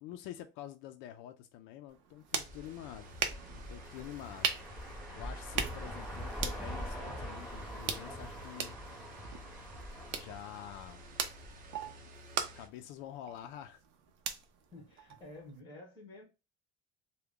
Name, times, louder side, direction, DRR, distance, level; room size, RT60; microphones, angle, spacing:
voice 1, 0.0-3.1 3.5-4.6 5.1-8.8 10.1-11.0 12.5-13.8, left 11 dB, 85° left, 0.4 m, -47 dB
sound 1, 1.9-15.6, right 7 dB, 75° right, 0.6 m, -41 dB
sound 2, 2.3-12.7, equal, 45° right, 0.7 m, -53 dB
sound 3, 2.4-11.6, equal, ahead, 0.8 m, -44 dB
voice 2, 14.7-16.2, left 1 dB, 25° left, 1.4 m, -50 dB
3.4 x 2.2 x 3.6 m
cardioid pair, 175°, 20 cm